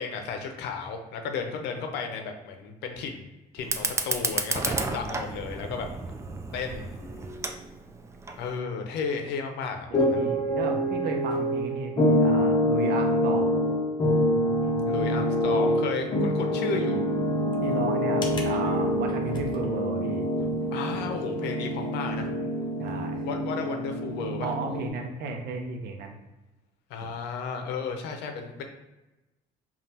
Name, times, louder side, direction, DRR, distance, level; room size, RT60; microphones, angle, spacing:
voice 1, 0.0-3.3 3.5-5.9 6.5-6.9 8.4-10.2 14.8-17.0 18.6-19.0 20.7-22.3 23.2-24.5 26.9-28.6, left 5 dB, 85° left, 5 dB, 0.6 m, -33 dB
Fire, 3.6-8.6, right 3 dB, 15° right, 0.3 m, -32 dB
sound 1, 7.0-7.4 9.8-24.9, equal, 25° left, 0.7 m, -26 dB
voice 2, 9.9-13.6 17.6-20.2 22.8-23.3 24.4-26.2 27.0-27.1, right 3 dB, 70° right, 3 dB, 0.7 m, -34 dB
5.2 x 2.4 x 2.8 m, 1.0 s
cardioid pair, 110°, 17 cm